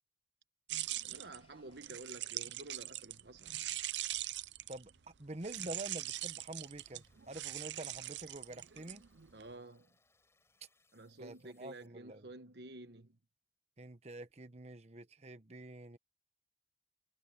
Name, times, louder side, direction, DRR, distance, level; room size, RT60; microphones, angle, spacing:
sound 1, 0.7-5.0 5.4-9.4, right 14 dB, 90° right, 0.6 m, -42 dB
sound 2, 0.8-9.6, left 1 dB, 35° left, 7.3 m, -75 dB
voice 1, 1.0-3.6 5.6-5.7 9.3-9.9 10.9-13.2, right 2 dB, 75° right, 1.3 m, -51 dB
voice 2, 5.2-9.0 11.2-12.3 13.8-16.0, right 2 dB, 40° right, 1.1 m, -47 dB
sound 3, 5.5-11.9, left 3 dB, 15° left, 4.5 m, -75 dB
head